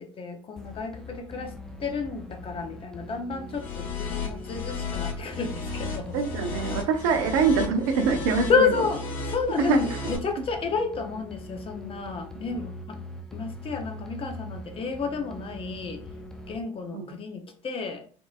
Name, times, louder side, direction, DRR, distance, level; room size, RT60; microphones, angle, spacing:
voice 1, 0.0-1.5 1.8-6.2 8.5-9.0 9.3-13.0 13.3-16.0 16.5-18.0, left 5 dB, 35° left, 5 dB, 0.7 m, -30 dB
sound 1, 0.6-16.6, left 1 dB, 5° left, 0.5 m, -42 dB
sound 2, 3.5-10.2, left 4 dB, 60° left, 1.4 m, -34 dB
voice 2, 6.1-8.7 9.6-9.8 10.0-10.1 16.9-17.1, right 5 dB, 75° right, 6 dB, 0.6 m, -24 dB
3.6 x 2.5 x 2.4 m, 0.44 s
hypercardioid pair, 70°, 16 cm